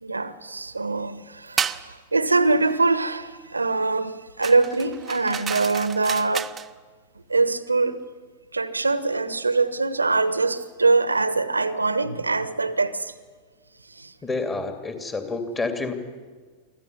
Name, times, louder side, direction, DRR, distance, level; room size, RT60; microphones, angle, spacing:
voice 1, 0.0-6.5 7.3-8.0 8.5-13.1 14.0-14.1, right 3 dB, 80° right, 1.2 m, -23 dB
sound 1, 1.6-1.9 4.4-6.7, right 7 dB, 20° right, 0.9 m, -31 dB
voice 2, 14.2-15.9, left 3 dB, 15° left, 2.8 m, -28 dB
24.0 x 15.0 x 9.8 m
figure-of-eight pair, 90°, 0 cm